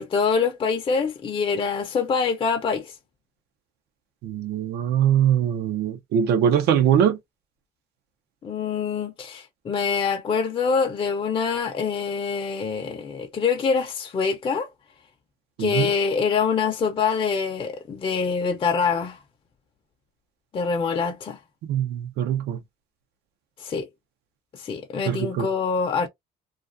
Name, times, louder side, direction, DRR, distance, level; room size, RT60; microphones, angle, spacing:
voice 1, 0.0-2.9 8.4-14.7 15.6-19.2 20.5-21.4 23.6-23.9 24.5-26.1, left 5 dB, 30° left, 0.5 m, -25 dB
voice 2, 4.2-7.2 15.6-15.9 21.7-22.6 25.1-25.5, right 9 dB, 75° right, 0.6 m, -22 dB
2.4 x 2.3 x 2.5 m
cardioid pair, 110°, 17 cm